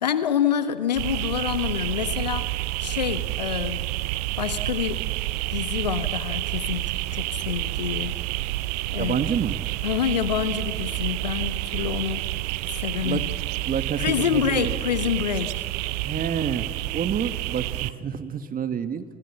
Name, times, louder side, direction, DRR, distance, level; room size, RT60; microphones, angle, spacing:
voice 1, 0.0-2.4 2.8-3.8 4.4-5.1 5.5-8.2 8.9-9.2 9.8-12.2 12.7-13.3 14.0-15.7, left 9 dB, 85° left, 13 dB, 1.1 m, -27 dB
sound 1, 1.0-17.9, right 18 dB, 70° right, 0.7 m, -29 dB
voice 2, 9.0-9.6 13.0-13.2 13.7-14.8 15.9-19.0, right 7 dB, 45° right, 10 dB, 1.8 m, -28 dB
29.5 x 25.0 x 7.2 m, 2.4 s
figure-of-eight pair, 55°, 21 cm